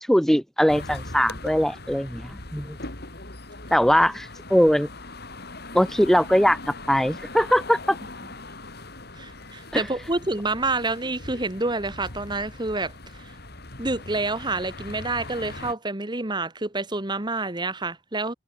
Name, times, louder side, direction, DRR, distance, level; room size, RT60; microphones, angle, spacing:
voice 1, 0.0-2.8 3.7-4.9 5.7-6.6 6.9-8.0 9.7-9.8, equal, ahead, 1.2 m, -21 dB
sound 1, 0.7-15.7, left 2 dB, 55° left, 5.3 m, -40 dB
voice 2, 9.2-13.3 13.8-18.3, right 2 dB, 25° right, 1.9 m, -28 dB
head